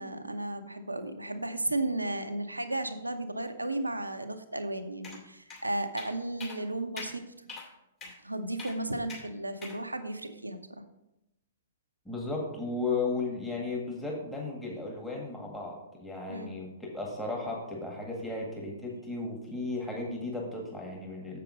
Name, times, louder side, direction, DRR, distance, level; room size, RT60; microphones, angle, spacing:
voice 1, 0.0-7.2 8.2-10.8 16.3-16.6, right 2 dB, 90° right, 8 dB, 0.8 m, -34 dB
sound 1, 5.0-5.2 5.5-5.6 6.0-6.1 6.4-6.6 7.0-7.1 7.5-7.7 8.0-8.2 8.6-8.8 9.1-9.2 9.6-9.8, left 4 dB, 25° left, 2.6 m, -42 dB
voice 2, 12.1-16.7 16.9-21.4, left 3 dB, 5° left, -2 dB, 1.9 m, -35 dB
7.6 x 6.9 x 5.1 m, 0.88 s
figure-of-eight pair, 115°, 0 cm